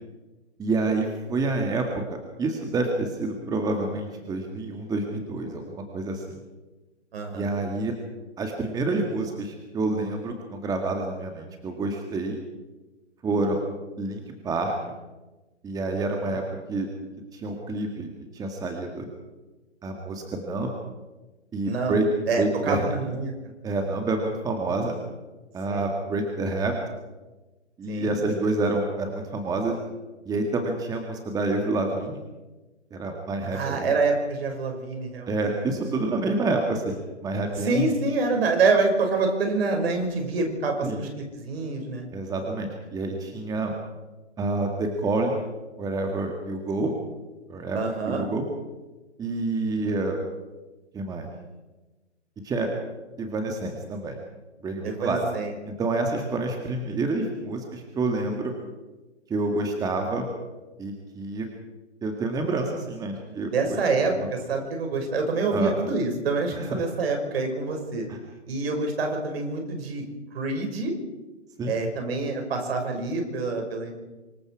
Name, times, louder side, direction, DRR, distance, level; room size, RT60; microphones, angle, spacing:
voice 1, 0.6-6.2 7.3-7.9 8.4-12.4 13.2-13.6 14.0-14.9 15.6-16.4 16.7-16.9 17.3-19.1 19.8-20.7 21.5-22.1 22.4-22.9 23.6-25.0 25.5-26.8 27.8-29.8 30.3-32.2 32.9-33.9 35.3-37.9 40.8-41.0 42.1-43.8 44.4-45.4 45.8-46.9 47.5-48.4 49.2-50.2 50.9-51.3 52.4-52.7 53.2-54.2 54.6-55.2 55.7-58.5 59.3-60.3 60.8-61.5 62.0-63.8 65.5-65.7 66.5-66.8 68.1-68.2 71.6-71.7, right 2 dB, 10° right, 3 dB, 1.9 m, -28 dB
voice 2, 7.1-7.5 16.0-16.4 21.6-22.0 22.3-23.5 25.7-25.9 27.9-28.2 33.5-35.6 37.6-42.1 47.7-48.3 54.8-55.5 63.3-68.1 68.5-70.0 70.3-70.9 71.6-73.9, right 3 dB, 55° right, 3 dB, 5.9 m, -26 dB
25.5 x 21.5 x 4.8 m, 1.1 s
hypercardioid pair, 135°, 36 cm